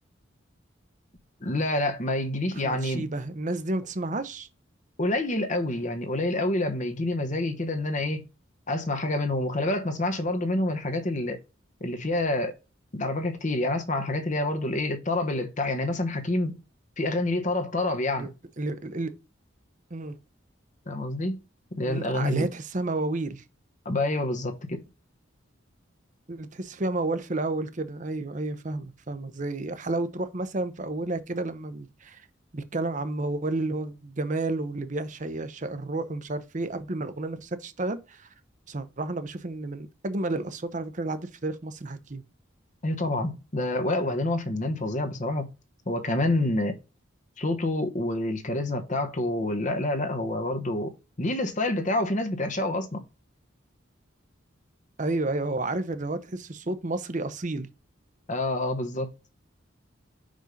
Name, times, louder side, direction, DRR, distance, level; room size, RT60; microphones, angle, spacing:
voice 1, 1.4-3.0 5.0-8.2 8.7-11.4 11.8-12.6 12.9-16.6 17.0-18.3 20.9-21.4 21.7-22.5 23.8-24.8 42.8-45.5 45.9-46.8 47.4-53.0 58.3-59.1, left 2 dB, 40° left, 1.1 m, -27 dB
voice 2, 2.5-4.5 18.2-18.3 18.6-19.1 19.9-20.2 21.8-23.4 26.3-32.3 32.5-38.3 38.7-42.2 55.0-57.7, right 2 dB, 40° right, 0.8 m, -31 dB
5.4 x 5.1 x 5.2 m
head